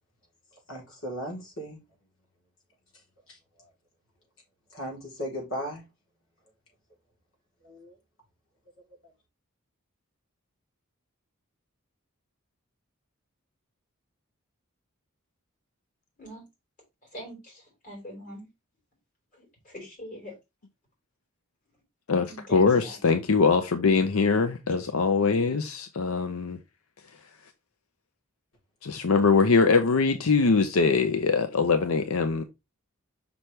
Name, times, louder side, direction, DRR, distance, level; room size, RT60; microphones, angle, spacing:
voice 1, 0.7-1.8 4.7-5.8 7.6-7.9 31.6-31.8, equal, 65° left, 3.4 m, -36 dB
voice 2, 17.1-18.5 19.3-20.3 22.3-23.0, equal, 40° left, 4.2 m, -43 dB
voice 3, 22.1-26.6 28.8-32.4, left 4 dB, 85° left, 0.6 m, -22 dB
6.0 x 5.6 x 3.2 m
head